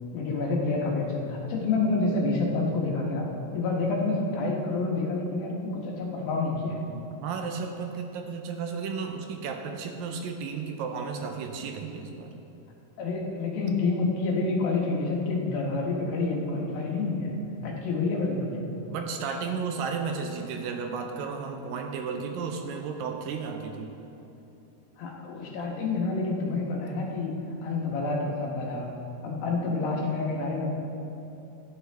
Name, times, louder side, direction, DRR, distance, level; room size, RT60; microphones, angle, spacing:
voice 1, 0.1-3.3 3.5-6.9 13.0-17.3 17.6-18.7 25.0-27.3 27.6-28.9 29.2-30.7, left 3 dB, 75° left, -1 dB, 3.1 m, -28 dB
voice 2, 7.2-12.3 18.9-23.9, right 5 dB, 75° right, 4 dB, 2.3 m, -33 dB
16.0 x 9.6 x 3.4 m, 2.9 s
omnidirectional pair, 4.3 m